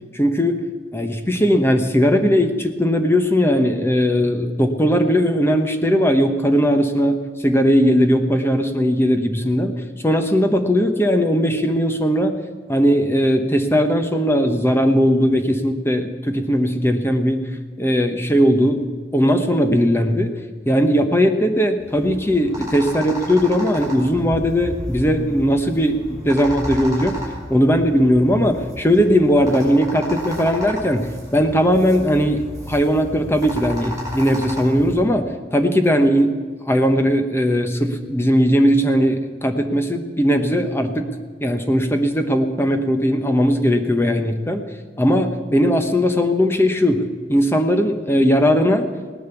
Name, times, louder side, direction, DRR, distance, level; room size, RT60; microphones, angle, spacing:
voice 1, 0.1-0.7 0.9-9.7 10.0-12.4 12.7-17.5 17.8-18.9 19.1-20.3 20.7-26.0 26.2-27.2 27.5-36.4 36.7-41.1 41.4-44.6 45.0-48.9, equal, 15° left, 6 dB, 1.0 m, -18 dB
sound 1, 21.8-35.0, equal, 20° right, 5.3 m, -33 dB
18.0 x 10.5 x 7.0 m, 1.5 s
head